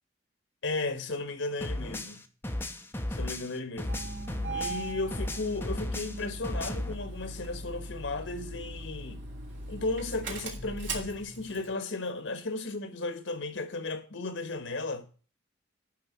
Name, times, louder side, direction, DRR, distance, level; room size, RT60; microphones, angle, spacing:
voice 1, 0.6-2.2 3.1-4.0 4.5-9.2 9.7-15.1, left 3 dB, 75° left, 1.4 m, -35 dB
sound 1, 1.6-4.9 5.1-6.9, left 1 dB, 10° left, 0.8 m, -35 dB
Engine starting, 3.9-11.7, right 2 dB, 65° right, 2.8 m, -39 dB
11.0 x 3.8 x 7.3 m
head